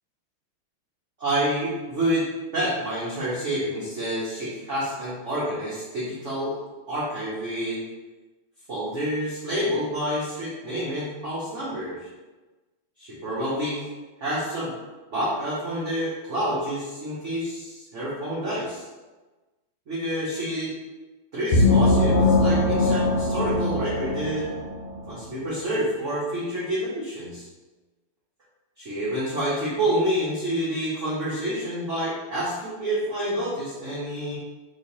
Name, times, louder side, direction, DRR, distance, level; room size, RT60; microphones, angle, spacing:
voice 1, 1.2-2.2 2.5-6.6 6.9-7.8 8.7-12.1 13.0-13.8 14.2-14.7 15.1-18.9 19.9-20.7 21.3-24.5 25.0-27.5 28.8-34.4, equal, 90° right, -8 dB, 0.6 m, -28 dB
sound 1, 21.5-25.1, left 2 dB, 85° left, 1.7 m, -21 dB
3.2 x 3.2 x 2.7 m, 1.2 s
omnidirectional pair, 2.3 m